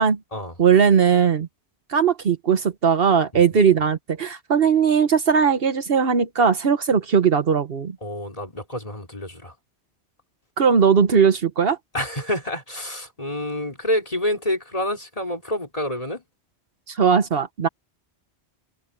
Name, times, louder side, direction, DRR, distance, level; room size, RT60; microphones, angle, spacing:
voice 1, 0.6-1.5 1.9-8.0 10.6-11.8 16.9-17.7, right 6 dB, 65° right, 1.2 m, -19 dB
voice 2, 8.0-9.6 11.9-16.2, left 1 dB, 35° left, 3.6 m, -28 dB
open air
omnidirectional pair, 1.1 m